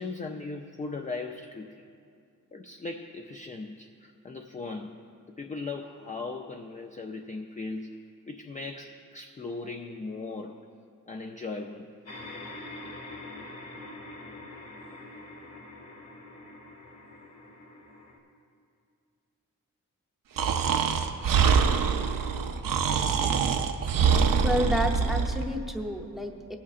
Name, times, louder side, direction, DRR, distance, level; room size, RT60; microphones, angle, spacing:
voice 1, 0.0-1.8 2.5-5.0 5.4-10.6 11.1-11.9, left 3 dB, 25° left, 3 dB, 0.4 m, -38 dB
sound 1, 12.0-18.2, left 2 dB, 50° left, 1.5 m, -44 dB
Breathing, 20.4-25.5, right 6 dB, 85° right, 0.6 m, -24 dB
voice 2, 24.0-26.6, equal, ahead, 2 dB, 0.7 m, -31 dB
23.0 x 8.5 x 2.5 m, 2.4 s
wide cardioid pair, 135°, 32 cm